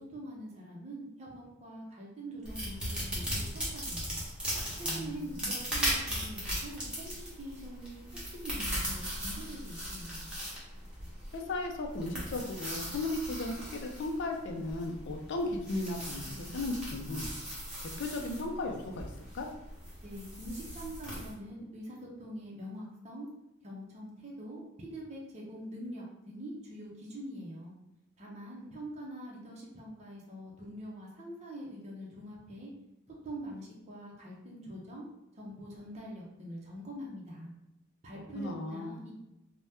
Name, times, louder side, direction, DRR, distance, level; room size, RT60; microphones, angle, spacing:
voice 1, 0.0-4.2 4.8-10.3 20.0-23.3 23.6-27.8 28.2-32.7 33.1-35.1 35.3-37.5 38.0-39.1, equal, 35° right, -3 dB, 0.6 m, -44 dB
sound 1, 2.4-21.3, equal, 5° right, 0.9 m, -38 dB
voice 2, 4.9-5.2 11.3-17.3 17.8-19.5 38.3-38.9, left 2 dB, 60° left, 2 dB, 0.4 m, -36 dB
2.7 x 2.1 x 3.4 m, 0.90 s
head